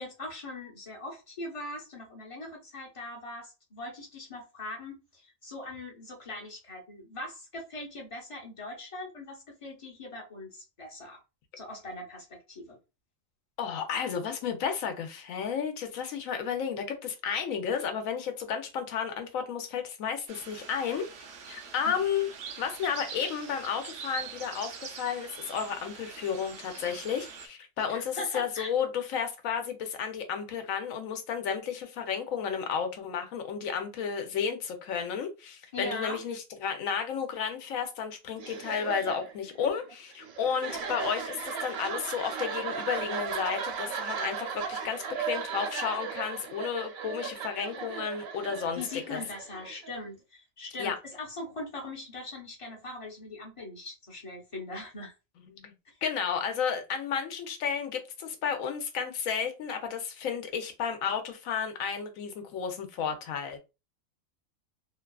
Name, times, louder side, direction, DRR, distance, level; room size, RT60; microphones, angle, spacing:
voice 1, 0.0-11.2 11.6-12.8 21.8-21.9 27.8-28.7 35.7-36.2 48.7-55.1, left 2 dB, 30° left, 0.7 m, -41 dB
voice 2, 13.6-21.1 21.5-22.3 22.6-48.8 49.1-49.2 50.8-50.9 55.4-55.7 56.0-63.6, left 7 dB, 85° left, 1.0 m, -32 dB
sound 1, 20.3-27.5, right 6 dB, 65° right, 0.7 m, -44 dB
sound 2, 38.4-50.0, right 6 dB, 85° right, 1.1 m, -36 dB
2.8 x 2.3 x 2.2 m
omnidirectional pair, 1.4 m